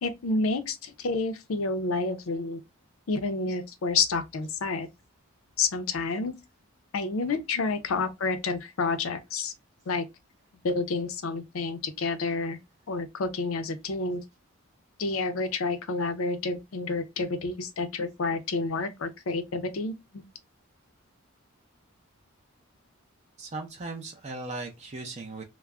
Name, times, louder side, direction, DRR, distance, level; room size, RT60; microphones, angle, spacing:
voice 1, 0.0-2.6 3.1-4.9 5.6-6.3 6.9-9.5 9.9-10.1 10.6-12.6 12.9-14.2 15.0-20.2, left 3 dB, 80° left, 0.5 m, -29 dB
voice 2, 23.4-25.4, right 3 dB, 30° right, 0.4 m, -38 dB
2.3 x 2.0 x 3.4 m
head